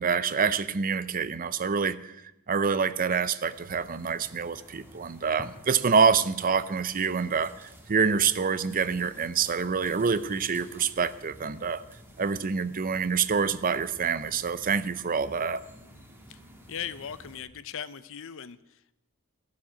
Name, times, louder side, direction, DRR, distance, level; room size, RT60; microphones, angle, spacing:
voice 1, 0.0-2.1 2.5-11.8 12.2-15.6, right 6 dB, 40° right, 15 dB, 0.6 m, -26 dB
countyside copse ambience, 3.5-17.4, equal, 10° right, 1.8 m, -51 dB
voice 2, 16.7-18.9, left 8 dB, 60° left, 15 dB, 0.7 m, -39 dB
14.5 x 7.5 x 9.8 m, 0.87 s
head